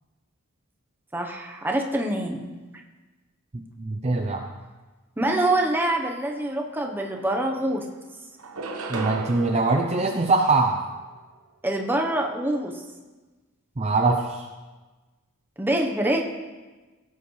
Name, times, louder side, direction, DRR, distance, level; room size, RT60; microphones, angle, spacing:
voice 1, 1.1-2.5 5.2-7.8 11.6-12.7 15.6-16.2, right 1 dB, 10° right, 1 dB, 0.9 m, -25 dB
voice 2, 3.5-4.4 8.9-10.8 13.8-14.4, right 3 dB, 30° right, 3 dB, 0.5 m, -23 dB
sound 1, 6.7-6.8 7.2-7.9 8.4-11.0, right 3 dB, 85° right, 1.0 m, -36 dB
16.5 x 7.8 x 3.2 m, 1.2 s
head